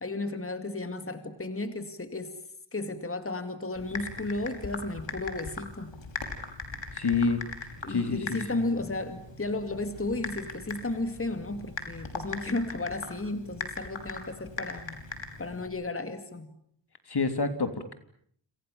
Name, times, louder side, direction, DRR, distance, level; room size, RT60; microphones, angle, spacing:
voice 1, 0.0-2.4 2.7-6.0 7.8-15.0 15.4-16.5, left 2 dB, 30° left, 9 dB, 2.4 m, -34 dB
Typing, 3.8-15.7, left 3 dB, 80° left, 5.7 m, -40 dB
voice 2, 6.9-7.4 7.9-8.6 17.1-17.9, left 4 dB, 60° left, 9 dB, 3.4 m, -28 dB
29.5 x 27.5 x 7.1 m, 0.65 s
wide cardioid pair, 65°, 44 cm